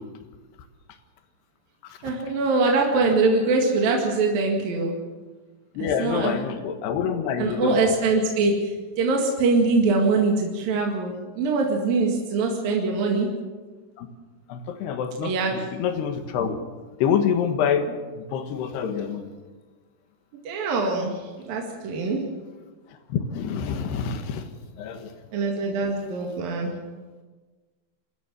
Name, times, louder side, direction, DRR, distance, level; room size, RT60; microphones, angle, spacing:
voice 1, 2.0-4.9 5.8-6.4 7.4-13.3 15.2-15.5 20.5-22.2 25.3-26.7, right 3 dB, 60° right, 0 dB, 3.6 m, -23 dB
voice 2, 5.8-7.8 14.0-14.1 14.5-15.3 15.8-16.6 17.0-17.8 18.3-19.2 23.1-24.4 24.8-25.1, left 7 dB, 70° left, 7 dB, 3.5 m, -26 dB
26.0 x 14.5 x 7.5 m, 1.3 s
omnidirectional pair, 5.1 m